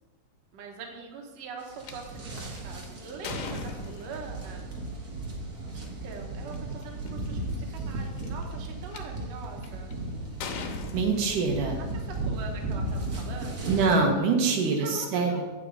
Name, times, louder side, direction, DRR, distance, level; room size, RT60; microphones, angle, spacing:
voice 1, 0.5-4.7 5.7-9.9 11.8-13.8 14.5-15.4, right 4 dB, 65° right, 1 dB, 2.1 m, -43 dB
sound 1, 1.6-14.0, right 2 dB, 45° right, 1.3 m, -35 dB
sound 2, 1.8-1.9 2.6-4.4 5.7-5.9 6.5-6.6 6.8-7.3 8.0-9.0 9.6-9.9 10.4-11.8, left 5 dB, 90° left, 2.5 m, -39 dB
voice 2, 10.9-11.8 13.7-15.4, right 4 dB, 90° right, 1 dB, 2.8 m, -24 dB
9.0 x 8.1 x 3.9 m, 1.3 s
omnidirectional pair, 3.6 m